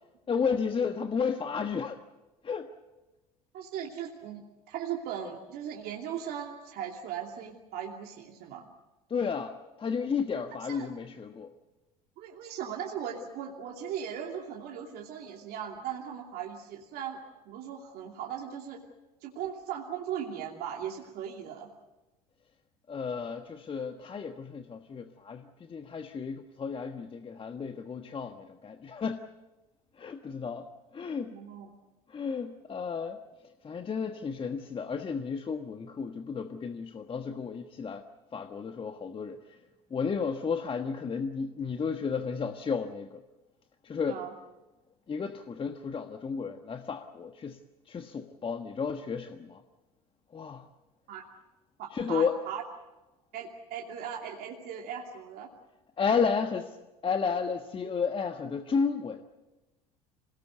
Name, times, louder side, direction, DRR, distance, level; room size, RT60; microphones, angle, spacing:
voice 1, 0.3-2.0 2.4-2.7 9.1-11.5 22.9-29.3 30.0-30.7 30.9-31.4 32.1-33.2 33.6-38.0 38.3-39.6 39.9-43.2 43.8-44.2 45.1-47.6 47.9-49.6 50.3-50.7 51.9-52.4 56.0-56.8 57.0-59.2, left 6 dB, 25° left, 7 dB, 1.3 m, -32 dB
voice 2, 3.5-8.7 10.7-10.9 12.2-17.2 17.4-18.8 19.2-21.7 31.3-31.7 44.1-44.3 51.1-51.2 51.8-52.6 53.3-55.5, right 8 dB, 55° right, 0 dB, 2.8 m, -38 dB
27.0 x 18.5 x 8.1 m, 1.1 s
figure-of-eight pair, 70°, 19 cm